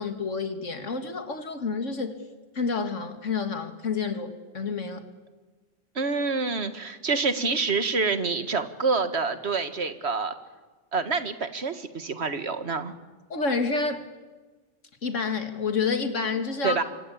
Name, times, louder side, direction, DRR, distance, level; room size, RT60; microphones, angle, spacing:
voice 1, 0.0-2.2 2.5-5.0 13.3-14.1 15.0-16.8, left 4 dB, 80° left, 7 dB, 2.6 m, -29 dB
voice 2, 6.0-10.4 10.9-12.9 16.6-16.8, right 4 dB, 60° right, 10 dB, 1.9 m, -27 dB
26.5 x 24.5 x 8.6 m, 1.3 s
omnidirectional pair, 1.3 m